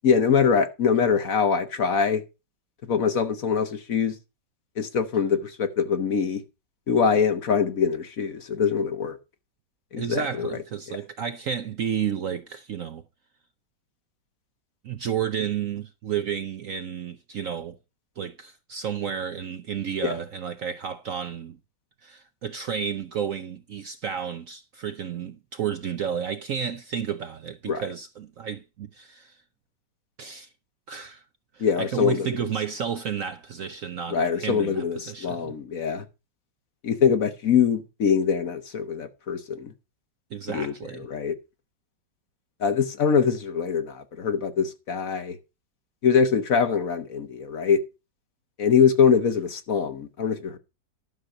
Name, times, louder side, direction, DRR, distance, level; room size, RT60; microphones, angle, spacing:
voice 1, 0.0-2.2 2.9-4.1 4.8-6.4 6.9-9.2 9.9-10.5 20.0-20.2 27.7-27.8 31.6-32.3 34.1-36.1 36.8-39.7 40.5-41.3 42.6-45.4 46.0-47.8 48.6-50.6, left 6 dB, 50° left, 1.4 m, -23 dB
voice 2, 10.0-13.0 14.8-17.8 18.2-21.6 22.0-29.4 30.2-30.5 30.9-31.2 31.5-35.5 40.3-41.1, right 8 dB, 60° right, 0.9 m, -31 dB
12.0 x 6.4 x 5.5 m
omnidirectional pair, 2.0 m